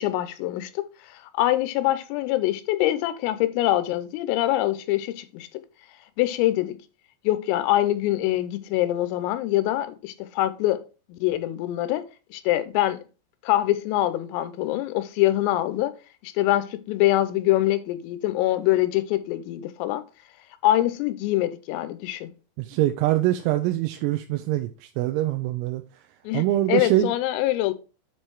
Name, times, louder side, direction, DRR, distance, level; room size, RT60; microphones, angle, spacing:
voice 1, 0.0-5.5 6.2-6.8 7.3-10.8 11.1-13.0 13.4-15.9 16.2-20.0 20.6-22.3 26.3-27.7, left 15 dB, 90° left, 3.4 m, -24 dB
voice 2, 22.6-26.0 26.3-27.1, right 14 dB, 90° right, 3.4 m, -24 dB
8.2 x 4.5 x 4.7 m
omnidirectional pair, 5.9 m